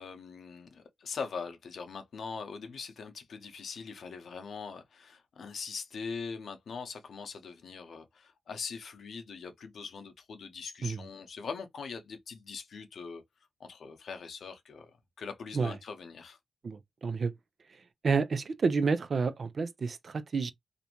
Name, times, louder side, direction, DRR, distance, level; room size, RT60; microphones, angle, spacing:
voice 1, 0.0-13.2 13.6-14.9 15.2-16.4, left 5 dB, 75° left, 0.7 m, -42 dB
voice 2, 16.6-17.3 18.0-20.5, right 4 dB, 60° right, 0.4 m, -29 dB
2.5 x 2.1 x 2.9 m
cardioid pair, 60°, 0 cm